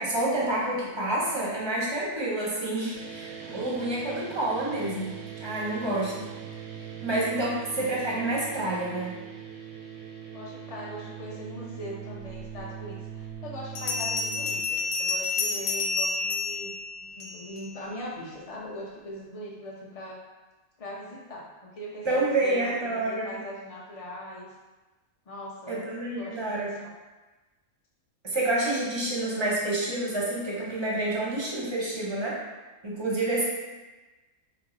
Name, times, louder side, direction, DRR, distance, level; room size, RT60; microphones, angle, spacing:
voice 1, 0.0-5.2 5.4-6.3 7.0-9.2 22.0-23.4 25.7-26.7 28.2-32.4 32.8-33.4, right 2 dB, 25° right, -5 dB, 0.7 m, -28 dB
sound 1, 2.9-14.6, right 8 dB, 70° right, 0.9 m, -41 dB
voice 2, 10.3-16.7 17.0-20.2 20.8-24.5 25.3-25.8 26.1-26.9, left 1 dB, 35° left, -5 dB, 0.6 m, -41 dB
Bell, 12.5-12.6 13.7-17.6, left 4 dB, 90° left, 1.1 m, -29 dB
4.6 x 2.0 x 3.8 m, 1.2 s
omnidirectional pair, 1.5 m